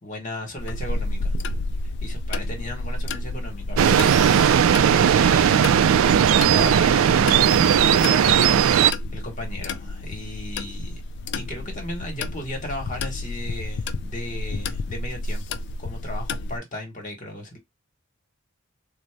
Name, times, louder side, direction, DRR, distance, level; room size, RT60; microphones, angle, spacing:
voice 1, 0.0-1.3 2.0-4.0 4.9-5.9 6.4-7.3 7.8-8.4 9.1-11.0 11.3-17.6, left 1 dB, 35° left, 1.1 m, -35 dB
sound 1, 0.6-16.6, left 2 dB, 55° left, 0.4 m, -31 dB
sound 2, 3.8-5.7, right 3 dB, 15° right, 0.7 m, -37 dB
sound 3, 3.8-8.9, right 8 dB, 70° right, 0.3 m, -17 dB
4.0 x 2.1 x 3.2 m
head